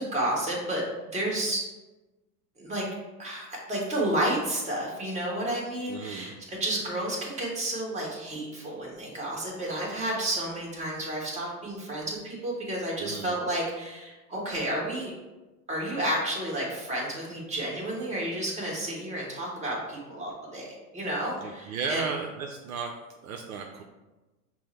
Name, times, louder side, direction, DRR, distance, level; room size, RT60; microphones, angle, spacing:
voice 1, 0.0-1.6 2.6-2.8 3.2-15.2 15.7-20.7 20.9-22.1, right 1 dB, 15° right, -3 dB, 1.4 m, -31 dB
voice 2, 5.9-6.3 13.0-13.4 21.4-22.9 23.2-23.8, right 5 dB, 60° right, 3 dB, 0.6 m, -35 dB
6.0 x 2.1 x 4.2 m, 1.1 s
hypercardioid pair, 95°, 46 cm